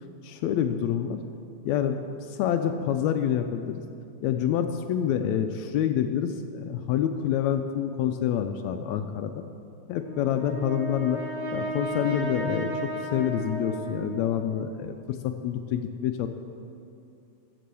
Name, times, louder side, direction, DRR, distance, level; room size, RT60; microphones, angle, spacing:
voice 1, 0.2-1.2 1.7-2.0 2.3-3.8 4.2-9.4 9.9-11.2 11.5-16.3, left 9 dB, 80° left, 7 dB, 1.7 m, -27 dB
Brass instrument, 10.0-14.4, right 1 dB, 65° right, 4.3 m, -34 dB
14.0 x 6.9 x 6.8 m, 2.6 s
omnidirectional pair, 3.4 m